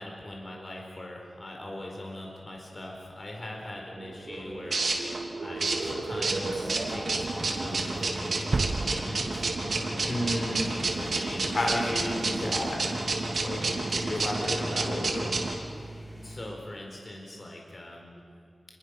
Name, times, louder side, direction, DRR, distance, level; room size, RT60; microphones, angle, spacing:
voice 1, 0.0-5.0 5.4-12.5 14.1-14.3 16.2-18.3, left 1 dB, 40° left, 0 dB, 4.4 m, -42 dB
sound 1, 4.0-15.5, right 3 dB, 75° right, 3.2 m, -30 dB
sound 2, 6.1-16.5, equal, 20° left, 5.0 m, -42 dB
sound 3, 8.5-10.6, right 3 dB, 55° right, 0.7 m, -32 dB
voice 2, 10.1-10.7 11.5-12.9 13.4-15.3, left 1 dB, 60° left, 0 dB, 4.6 m, -31 dB
28.5 x 22.5 x 6.6 m, 2.3 s
wide cardioid pair, 100°, 0 cm